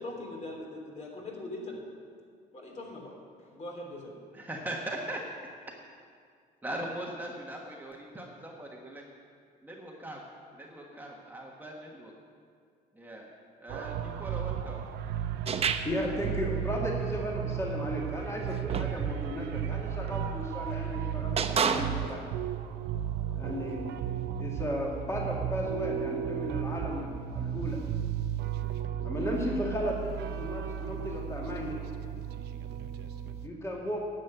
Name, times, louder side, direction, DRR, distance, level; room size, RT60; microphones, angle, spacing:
voice 1, 0.0-1.8 2.5-3.1 3.4-4.1, left 2 dB, 40° left, 0 dB, 3.1 m, -41 dB
voice 2, 4.3-5.2 5.7-5.8 6.6-9.0 9.6-10.3 10.5-12.1 12.9-13.3 13.6-14.8, right 1 dB, 10° right, -2 dB, 1.4 m, -40 dB
sound 1, 13.7-33.5, right 9 dB, 80° right, 0.8 m, -34 dB
sound 2, 15.5-16.1 18.4-19.0 20.1-20.3 21.4-22.2, right 6 dB, 35° right, 0.7 m, -30 dB
voice 3, 15.8-22.3 23.3-23.9 24.4-27.8 29.0-31.8 33.4-34.0, left 1 dB, 15° left, -2 dB, 2.1 m, -35 dB
10.5 x 7.6 x 9.2 m, 2.2 s
cardioid pair, 110°, 17 cm